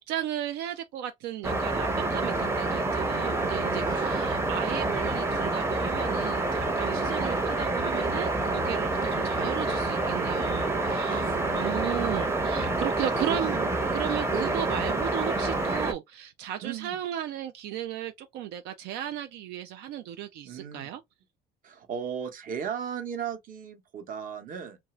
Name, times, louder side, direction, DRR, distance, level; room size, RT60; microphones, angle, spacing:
voice 1, 0.0-11.2 11.5-13.6 13.9-21.0, right 11 dB, 85° right, 0.4 m, -35 dB
sound 1, 1.4-15.9, right 2 dB, 15° right, 0.7 m, -28 dB
voice 2, 3.8-4.5 7.1-7.4 11.1-12.1 13.2-13.8 14.3-14.6 16.6-17.0 20.4-20.9 21.6-24.8, right 7 dB, 55° right, 0.9 m, -37 dB
2.6 x 2.4 x 2.9 m
cardioid pair, 110°, 17 cm